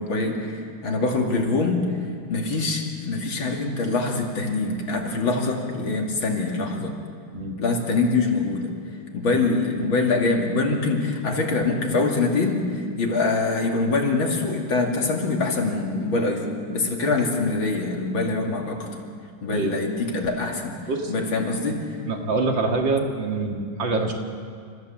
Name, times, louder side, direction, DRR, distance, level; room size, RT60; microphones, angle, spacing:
voice 1, 0.0-1.9 2.3-6.9 7.6-8.7 9.1-18.9 19.4-20.8 21.1-21.8, left 3 dB, 75° left, 1 dB, 3.3 m, -24 dB
voice 2, 19.5-19.9 20.9-21.1 22.1-24.1, right 3 dB, 65° right, 2 dB, 2.8 m, -25 dB
29.0 x 15.0 x 7.5 m, 2.1 s
omnidirectional pair, 2.2 m